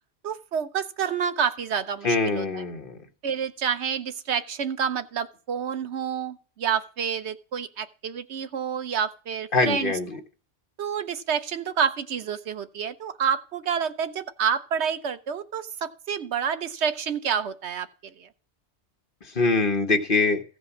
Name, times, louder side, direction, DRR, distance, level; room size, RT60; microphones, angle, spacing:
voice 1, 0.2-2.4 3.2-9.9 10.8-17.9 18.2-18.3, right 7 dB, 75° right, 11 dB, 1.1 m, -28 dB
voice 2, 2.0-3.0 9.5-10.2 19.2-20.4, left 3 dB, 50° left, 4 dB, 1.5 m, -23 dB
15.0 x 5.1 x 7.1 m, 0.40 s
omnidirectional pair, 1.1 m